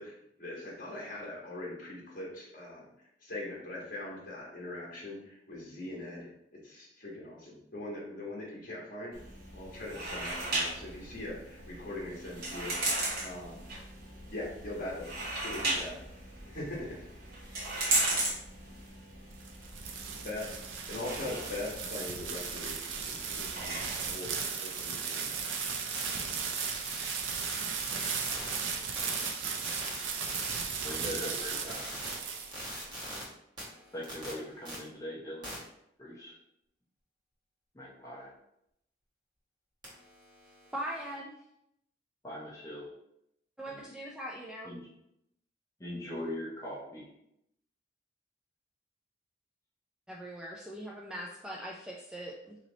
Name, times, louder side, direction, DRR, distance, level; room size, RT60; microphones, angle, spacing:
voice 1, 0.0-2.9 3.2-6.3 6.5-9.1 9.5-12.7 13.2-13.6 14.3-15.1 15.4-16.0 16.4-17.0 20.2-20.6 20.9-25.6, left 2 dB, 50° left, -4 dB, 1.4 m, -41 dB
sound 1, 9.1-24.1, right 2 dB, 55° right, 1.1 m, -36 dB
sound 2, 19.1-32.9, right 6 dB, 85° right, 0.5 m, -36 dB
sound 3, 24.2-28.6 29.0-30.9 31.2-33.2 33.6-34.7 35.4-35.6 39.8-41.1, right 1 dB, 25° right, 1.3 m, -44 dB
voice 2, 30.8-31.8 33.9-35.5 36.0-36.3 37.7-38.3 42.2-42.9 43.7-43.8 44.6-44.8 45.8-47.0, left 1 dB, 15° left, -6 dB, 0.8 m, -40 dB
voice 3, 40.7-41.4 43.6-44.7 50.1-52.6, equal, 5° right, -3 dB, 0.3 m, -41 dB
3.0 x 2.8 x 3.9 m, 0.79 s
head